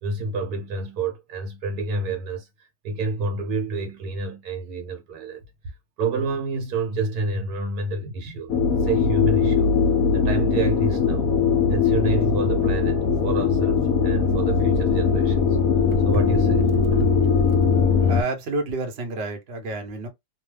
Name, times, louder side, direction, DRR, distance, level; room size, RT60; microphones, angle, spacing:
voice 1, 0.0-2.5 2.8-5.4 6.0-8.5 8.8-9.7 10.1-11.3 11.7-15.5 15.9-17.1 17.5-17.7 18.0-18.1, right 3 dB, 70° right, 1.2 m, -28 dB
sound 1, 8.5-18.2, left 5 dB, 70° left, 1.0 m, -20 dB
voice 2, 18.1-20.1, right 2 dB, 50° right, 0.8 m, -29 dB
2.8 x 2.1 x 3.2 m
omnidirectional pair, 1.8 m